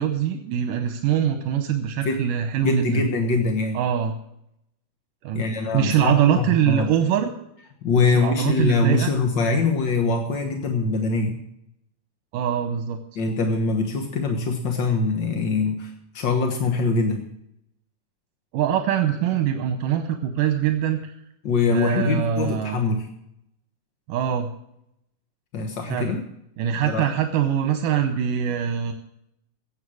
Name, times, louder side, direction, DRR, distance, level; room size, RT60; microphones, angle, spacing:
voice 1, 0.0-3.1 3.7-4.2 5.2-5.4 5.7-7.3 8.0-9.1 12.3-13.0 18.5-21.1 21.7-22.8 24.1-24.5 25.9-26.2 26.6-28.9, right 9 dB, 80° right, 6 dB, 2.6 m, -23 dB
voice 2, 2.6-3.8 5.3-6.9 7.8-11.4 13.1-17.3 21.4-23.1 25.5-26.2 26.8-27.0, left 3 dB, 55° left, 4 dB, 1.3 m, -23 dB
16.0 x 8.7 x 6.3 m, 0.79 s
omnidirectional pair, 3.7 m